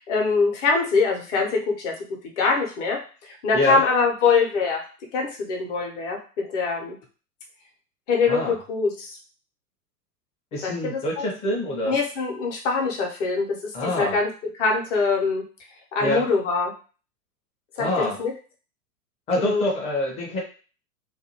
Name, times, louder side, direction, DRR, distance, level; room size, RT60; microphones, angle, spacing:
voice 1, 0.0-1.9 2.4-4.8 5.1-7.0 8.1-9.2 10.6-11.0 11.8-13.6 13.8-14.3 14.6-15.4 15.9-16.7 17.8-18.3 19.4-19.7, left 4 dB, 50° left, 1 dB, 0.9 m, -23 dB
voice 2, 10.5-12.0 13.7-14.2 16.0-16.3 17.8-18.2 19.3-20.4, left 1 dB, 15° left, -1 dB, 0.5 m, -26 dB
2.6 x 2.3 x 2.9 m, 0.37 s
figure-of-eight pair, 105°, 48 cm